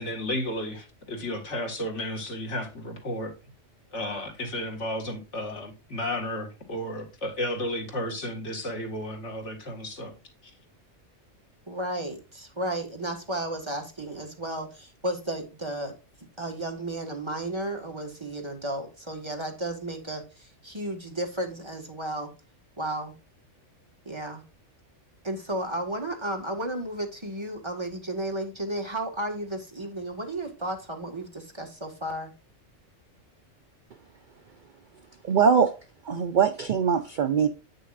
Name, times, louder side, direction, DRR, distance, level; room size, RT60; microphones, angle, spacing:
voice 1, 0.0-3.3 3.9-10.1, left 1 dB, 70° left, 2.2 m, -33 dB
voice 2, 11.7-15.9 16.4-20.2 20.6-22.3 22.8-23.1 24.1-24.4 25.2-32.3, right 1 dB, 20° right, 1.8 m, -33 dB
voice 3, 35.2-35.7 36.0-37.5, right 6 dB, 55° right, 0.6 m, -22 dB
8.6 x 6.5 x 2.6 m
omnidirectional pair, 1.3 m